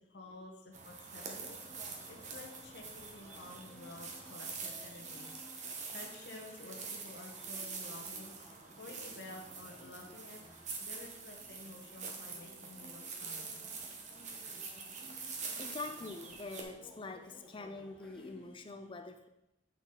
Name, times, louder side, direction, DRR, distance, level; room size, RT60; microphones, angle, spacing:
voice 1, 0.1-1.6 2.1-10.4 10.7-13.7, left 2 dB, 65° left, 0 dB, 1.0 m, -52 dB
sound 1, 0.7-16.6, right 4 dB, 40° right, 0.9 m, -45 dB
sound 2, 1.2-18.6, left 1 dB, 5° left, 1.0 m, -58 dB
voice 2, 15.6-19.3, left 3 dB, 30° left, 7 dB, 0.5 m, -45 dB
8.2 x 4.1 x 3.7 m, 0.89 s
head